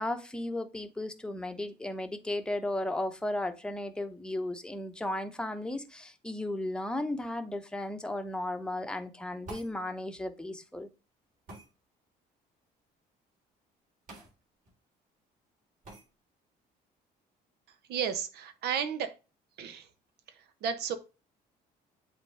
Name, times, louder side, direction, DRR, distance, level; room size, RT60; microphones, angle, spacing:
voice 1, 0.0-10.9, left 1 dB, 5° left, 0.9 m, -35 dB
sound 1, 9.5-9.8 11.5-11.7 14.1-14.3 14.7-14.8 15.8-16.1, right 2 dB, 50° right, 4.2 m, -46 dB
voice 2, 17.9-19.1 19.6-19.9 20.4-21.0, right 7 dB, 75° right, 1.0 m, -33 dB
8.1 x 4.1 x 3.3 m
cardioid pair, 110°, 17 cm